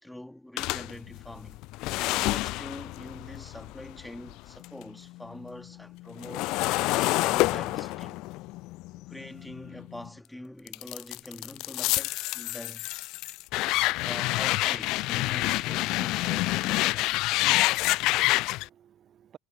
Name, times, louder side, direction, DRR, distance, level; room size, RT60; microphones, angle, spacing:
voice 1, 0.0-1.6 2.1-6.6 6.9-8.3 9.1-12.9 13.9-17.2, left 1 dB, 5° left, 2.4 m, -44 dB
sound 1, 0.6-4.8 5.2-10.1 10.7-18.7, left 20 dB, 55° left, 0.4 m, -28 dB
voice 2, 17.4-19.4, right 10 dB, 40° right, 0.8 m, -57 dB
figure-of-eight pair, 65°, 0 cm